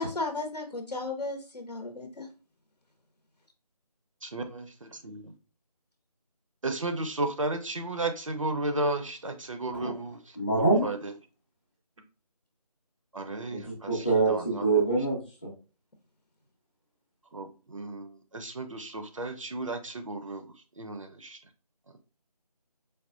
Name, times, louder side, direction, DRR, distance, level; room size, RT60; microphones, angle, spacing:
voice 1, 0.0-2.3, left 3 dB, 90° left, 4 dB, 0.9 m, -34 dB
voice 2, 4.2-5.3 6.6-10.2 10.6-11.1 13.1-14.7 17.3-20.5 20.8-21.4, right 2 dB, 55° right, 6 dB, 0.6 m, -34 dB
voice 3, 10.4-10.9 13.5-13.6 13.9-15.5, right 3 dB, 15° left, -6 dB, 0.7 m, -25 dB
4.7 x 2.3 x 2.5 m, 0.35 s
figure-of-eight pair, 165°, 20 cm